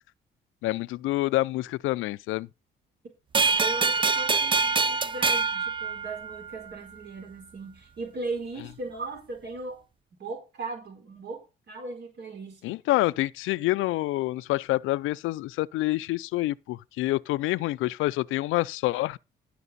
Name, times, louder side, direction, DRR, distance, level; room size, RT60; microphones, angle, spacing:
voice 1, 0.6-2.5 12.6-19.2, left 17 dB, 90° left, 0.5 m, -27 dB
sound 1, 3.3-6.6, right 4 dB, 25° right, 0.6 m, -25 dB
voice 2, 3.5-9.8 10.2-12.6, right 3 dB, 60° right, 4.1 m, -38 dB
15.5 x 6.0 x 4.1 m
cardioid pair, 90°, 20 cm